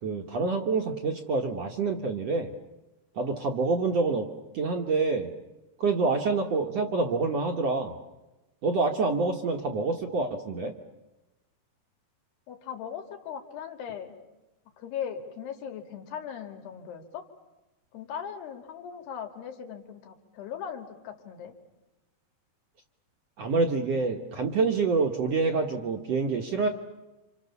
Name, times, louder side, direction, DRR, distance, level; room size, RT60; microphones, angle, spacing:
voice 1, 0.0-2.5 3.2-4.3 4.5-5.3 5.8-7.9 8.6-10.7 23.4-26.7, right 4 dB, 55° right, 3 dB, 2.0 m, -27 dB
voice 2, 12.5-14.2 14.8-17.2 17.9-21.5, left 8 dB, 80° left, 4 dB, 4.4 m, -39 dB
29.5 x 27.0 x 7.0 m, 1.0 s
omnidirectional pair, 4.7 m